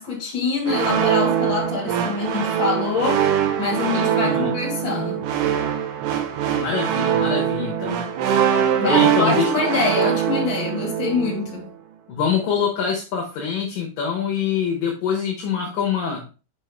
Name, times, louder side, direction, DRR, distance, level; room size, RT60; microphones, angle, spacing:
voice 1, 0.0-3.3 3.6-5.2 8.8-11.7, left 4 dB, 35° left, 2.6 m, -25 dB
sound 1, 0.7-11.6, right 9 dB, 80° right, 1.9 m, -22 dB
voice 2, 4.2-4.5 6.6-8.0 8.8-9.5 12.1-16.2, left 6 dB, 70° left, 2.4 m, -24 dB
6.8 x 5.4 x 3.3 m
omnidirectional pair, 4.9 m